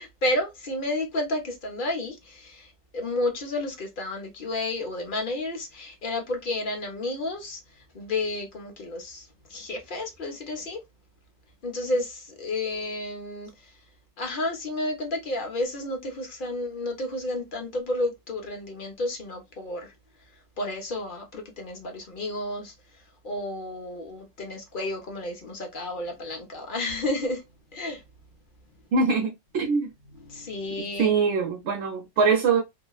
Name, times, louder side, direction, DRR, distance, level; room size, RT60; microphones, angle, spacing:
voice 1, 0.0-10.8 11.6-13.7 14.2-19.9 20.6-22.7 23.2-27.4 27.7-28.0 30.2-31.1, left 2 dB, 45° left, 0.9 m, -31 dB
voice 2, 28.9-29.9 31.0-32.6, right 5 dB, 65° right, 1.0 m, -23 dB
3.0 x 2.2 x 2.3 m
omnidirectional pair, 1.4 m